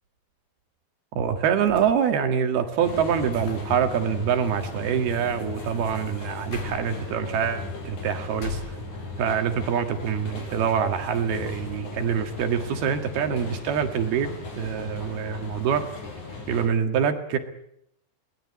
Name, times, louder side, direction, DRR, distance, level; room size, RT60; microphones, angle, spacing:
voice 1, 1.2-8.6 9.2-14.3 14.6-15.8 16.5-17.4, right 7 dB, 70° right, 7 dB, 3.6 m, -25 dB
sound 1, 1.7-9.4 9.8-10.6, left 6 dB, 85° left, 6.1 m, -45 dB
sound 2, 2.8-16.7, left 2 dB, 45° left, 6.1 m, -37 dB
22.5 x 19.5 x 8.5 m, 0.74 s
omnidirectional pair, 4.9 m